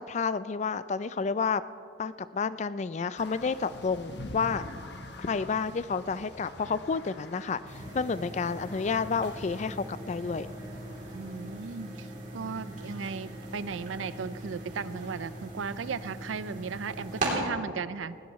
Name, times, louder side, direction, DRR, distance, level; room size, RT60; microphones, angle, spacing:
voice 1, 0.0-1.6 2.0-4.7 5.2-10.5, left 5 dB, 35° left, 15 dB, 0.3 m, -30 dB
sound 1, 3.2-12.3, left 2 dB, 60° left, 1.1 m, -46 dB
sound 2, 7.7-17.3, right 2 dB, 40° right, 3.2 m, -40 dB
voice 2, 11.1-12.1 12.3-18.2, right 5 dB, 85° right, 15 dB, 0.5 m, -36 dB
19.5 x 16.5 x 3.1 m, 2.5 s
head